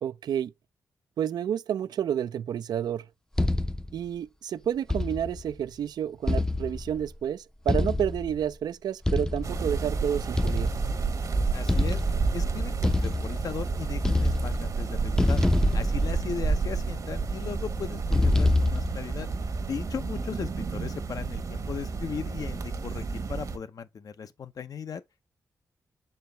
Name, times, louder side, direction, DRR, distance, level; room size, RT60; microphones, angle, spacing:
voice 1, 0.0-0.5 1.2-3.1 3.9-10.7, right 9 dB, 75° right, 0.4 m, -30 dB
sound 1, 3.4-4.0 4.9-5.5 6.3-7.1 7.7-8.4 9.0-9.7 10.4-11.1 11.7-12.4 12.8-13.7 14.0-14.8 15.2-16.7 18.1-19.1, left 2 dB, 10° left, 0.5 m, -26 dB
sound 2, 9.4-23.6, right 4 dB, 55° right, 1.0 m, -30 dB
voice 2, 11.5-12.0 12.3-15.4 15.7-19.3 19.7-25.0, left 6 dB, 60° left, 0.7 m, -37 dB
6.7 x 4.4 x 3.3 m
cardioid pair, 55°, 7 cm